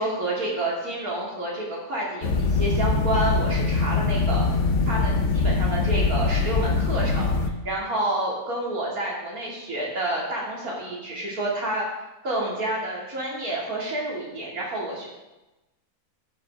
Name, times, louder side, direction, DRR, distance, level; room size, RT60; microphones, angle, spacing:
voice 1, 0.0-4.6 4.9-7.3 7.6-11.8 12.2-15.1, right 1 dB, 90° right, -4 dB, 3.4 m, -29 dB
sound 1, 2.2-7.5, left 4 dB, 60° left, 1.2 m, -23 dB
12.0 x 10.0 x 3.8 m, 1.0 s
omnidirectional pair, 1.5 m